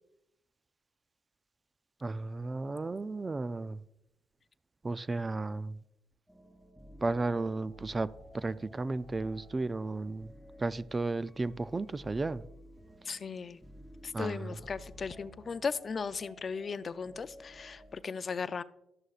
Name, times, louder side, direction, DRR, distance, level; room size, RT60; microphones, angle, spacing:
voice 1, 2.0-3.8 4.8-5.8 7.0-8.1 8.3-10.3 10.6-12.4 14.1-14.6, right 3 dB, 25° right, 0.3 m, -34 dB
sound 1, 6.3-18.0, equal, ahead, 3.5 m, -54 dB
voice 2, 13.0-13.6 14.0-18.6, left 5 dB, 40° left, 0.4 m, -37 dB
12.5 x 11.0 x 2.4 m
cardioid pair, 90°, 0 cm